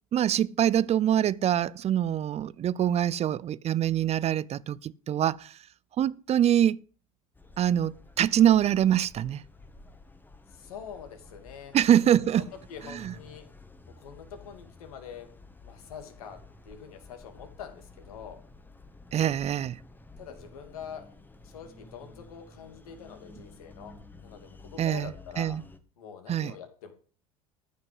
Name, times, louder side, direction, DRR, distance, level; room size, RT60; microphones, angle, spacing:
voice 1, 0.1-5.6 6.0-6.8 7.6-9.4 11.7-12.5 12.9-13.1 19.1-19.8 24.8-25.1 25.4-25.6 26.3-26.5, right 10 dB, 35° right, 0.6 m, -24 dB
sound 1, 7.3-25.8, left 2 dB, 10° left, 1.7 m, -52 dB
voice 2, 10.5-11.8 12.0-13.5 14.0-15.3 15.6-16.4 16.6-18.4 20.2-21.0 21.4-23.9 24.2-25.6 26.0-26.9, left 7 dB, 75° left, 2.8 m, -45 dB
13.5 x 6.2 x 7.9 m
hypercardioid pair, 75°, 19 cm